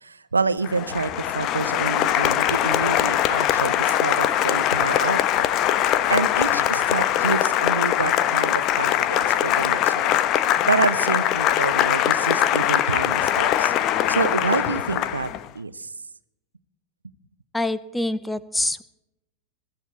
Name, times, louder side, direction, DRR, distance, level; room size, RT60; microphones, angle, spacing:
voice 1, 0.0-5.5 5.8-10.1 10.6-13.7 14.1-15.3 15.5-15.9, right 4 dB, 80° right, 15 dB, 0.9 m, -27 dB
Applause, 0.6-15.5, left 11 dB, 35° left, 0.9 m, -22 dB
voice 2, 17.5-18.8, left 2 dB, 5° left, 16 dB, 0.7 m, -25 dB
22.0 x 14.0 x 4.3 m, 0.85 s
figure-of-eight pair, 90°, 0 cm